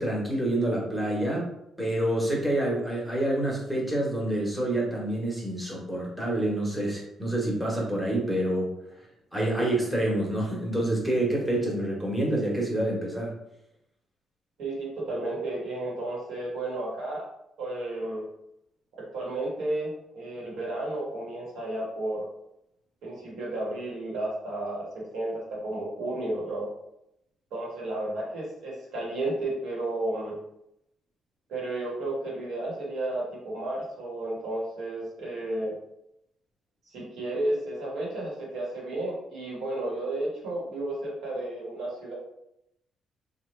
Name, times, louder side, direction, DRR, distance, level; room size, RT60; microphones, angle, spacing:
voice 1, 0.0-1.5 1.8-8.7 9.3-13.3, right 1 dB, 5° right, -3 dB, 1.2 m, -27 dB
voice 2, 14.6-17.3 17.6-18.2 19.1-22.2 23.0-26.7 27.5-30.4 31.5-35.7 36.9-42.1, right 2 dB, 80° right, -5 dB, 1.4 m, -32 dB
2.8 x 2.5 x 3.2 m, 0.81 s
cardioid pair, 90°, 0 cm